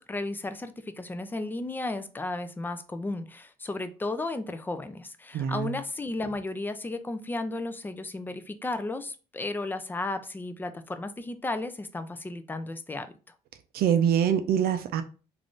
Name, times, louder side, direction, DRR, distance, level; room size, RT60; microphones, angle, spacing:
voice 1, 0.0-13.1, left 2 dB, 10° left, 0.3 m, -34 dB
voice 2, 5.3-5.8 13.7-15.0, right 8 dB, 65° right, 0.4 m, -24 dB
3.4 x 2.5 x 2.4 m
cardioid pair, 110°, 17 cm